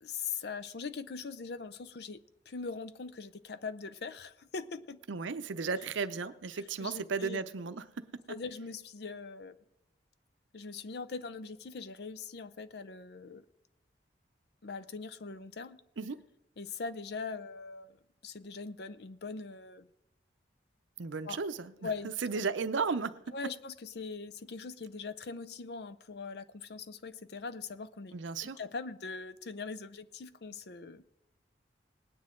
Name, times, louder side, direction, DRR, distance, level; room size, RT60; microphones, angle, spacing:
voice 1, 0.0-2.2 2.5-5.0 6.8-7.4 8.3-9.5 10.5-13.4 14.6-15.8 16.6-18.0 18.2-19.9 21.2-21.4 21.8-22.4 23.3-31.1, left 4 dB, 60° left, 0.5 m, -41 dB
voice 2, 5.1-8.1 16.0-16.2 21.0-21.7 22.0-23.3 28.1-28.6, right 5 dB, 85° right, 0.6 m, -35 dB
19.5 x 9.6 x 3.7 m
head